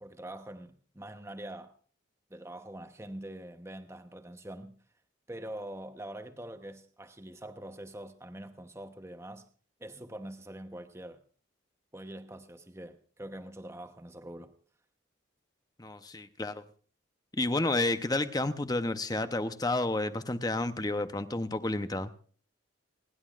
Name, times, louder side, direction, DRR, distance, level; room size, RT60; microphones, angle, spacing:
voice 1, 0.0-1.7 2.3-4.7 5.3-9.4 9.8-11.2 11.9-14.5, right 1 dB, 15° right, 0.9 m, -44 dB
voice 2, 15.8-16.6 17.4-22.1, left 2 dB, 20° left, 0.7 m, -30 dB
28.0 x 11.0 x 2.4 m
head